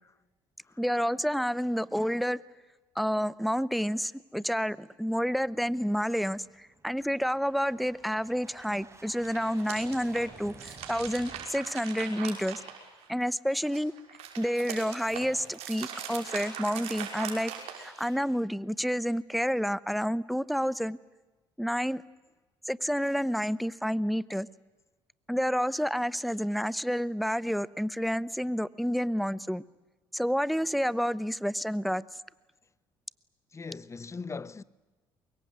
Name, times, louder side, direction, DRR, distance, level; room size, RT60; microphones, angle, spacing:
voice 1, 0.8-2.4 3.0-12.6 13.1-13.9 14.4-17.5 17.8-21.0 21.6-22.0 22.7-24.5 25.3-29.6 30.1-32.0, equal, ahead, 0.9 m, -29 dB
sound 1, 5.2-11.5, right 3 dB, 25° right, 6.3 m, -53 dB
sound 2, 9.1-13.2 13.6-18.2, right 8 dB, 70° right, 5.8 m, -41 dB
voice 2, 33.5-34.6, left 4 dB, 25° left, 1.0 m, -39 dB
24.5 x 22.0 x 9.6 m
supercardioid pair, 65°, 11 cm